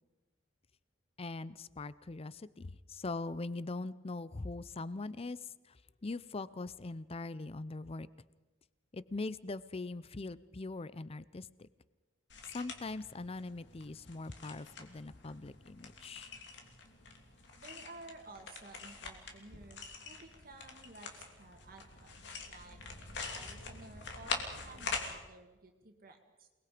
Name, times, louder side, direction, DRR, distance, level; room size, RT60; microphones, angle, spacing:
voice 1, 1.2-8.1 8.9-11.7 12.5-16.3, left 3 dB, 30° left, 17 dB, 0.6 m, -42 dB
sound 1, 12.3-25.1, left 4 dB, 65° left, 2.9 m, -45 dB
voice 2, 17.6-22.8 23.3-26.5, right 2 dB, 50° right, 4 dB, 2.1 m, -54 dB
28.5 x 20.0 x 5.1 m, 1.2 s
head